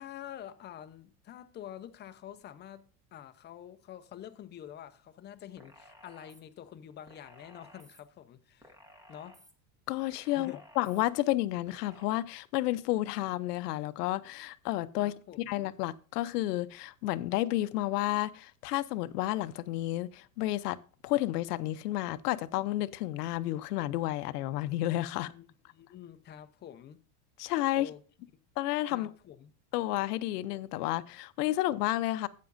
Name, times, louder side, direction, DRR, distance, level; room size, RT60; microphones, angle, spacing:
voice 1, 0.0-8.8 9.1-9.5 10.3-10.6 15.0-15.5 25.1-25.5 25.7-27.0 27.7-28.0 28.9-29.5, left 10 dB, 25° left, 0.6 m, -47 dB
sound 1, 5.6-6.4 7.1-8.0 8.6-9.5 10.1-11.0 11.7-12.1, equal, 10° right, 1.1 m, -56 dB
voice 2, 9.9-15.1 15.5-25.3 27.4-27.9 28.6-29.1 29.7-32.3, left 16 dB, 90° left, 0.7 m, -31 dB
12.5 x 8.4 x 2.6 m
supercardioid pair, 140°, 46 cm